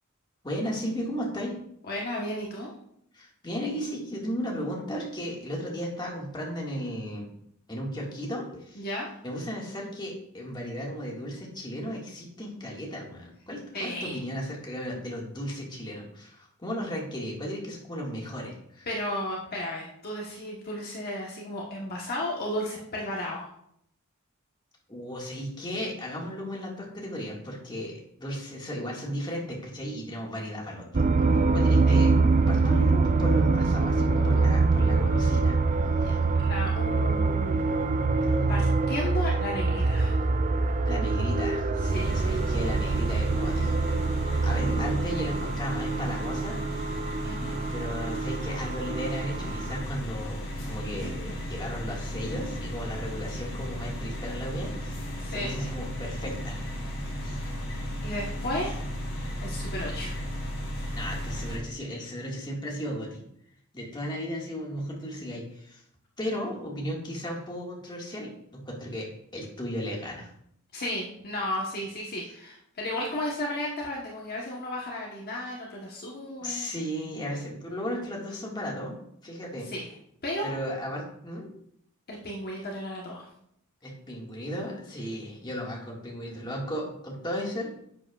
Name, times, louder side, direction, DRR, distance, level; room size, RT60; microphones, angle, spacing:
voice 1, 0.4-1.5 3.1-7.3 7.7-8.9 9.2-18.9 24.9-32.1 32.5-36.4 40.9-43.7 44.4-47.0 47.7-56.6 57.2-57.5 60.9-63.2 63.7-65.8 66.2-70.3 76.4-79.7 80.4-81.5 83.8-87.8, equal, 20° left, -2 dB, 1.8 m, -35 dB
voice 2, 1.9-2.7 8.8-9.1 13.7-14.2 18.9-23.5 31.9-32.0 36.0-37.7 38.5-40.2 41.9-42.1 47.2-47.6 55.2-55.7 58.0-58.8 59.4-60.2 70.7-76.7 79.7-79.9 80.2-80.5 82.1-83.3, left 1 dB, 45° left, -3 dB, 1.2 m, -34 dB
sound 1, 30.9-49.8, right 3 dB, 35° right, 0.4 m, -25 dB
sound 2, 41.9-61.6, equal, 60° left, 3.5 m, -34 dB
10.5 x 7.6 x 2.4 m, 0.71 s
head